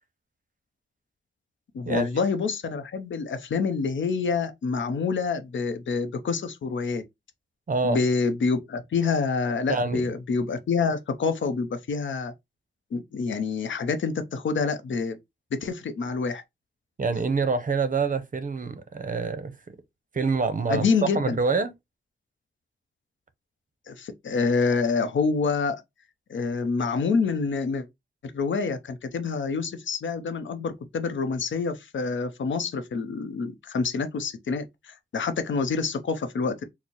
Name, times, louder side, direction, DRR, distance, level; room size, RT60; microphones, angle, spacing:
voice 1, 1.7-7.0 7.8-12.3 12.9-15.2 15.5-16.4 20.7-21.4 23.9-25.8 26.3-27.9 28.2-36.6, left 4 dB, 85° left, 0.6 m, -27 dB
voice 2, 7.7-8.0 9.7-10.1 17.0-19.5 20.1-20.9 21.1-21.7, right 4 dB, 45° right, 0.7 m, -26 dB
4.3 x 2.0 x 2.9 m
cardioid pair, 70°, 19 cm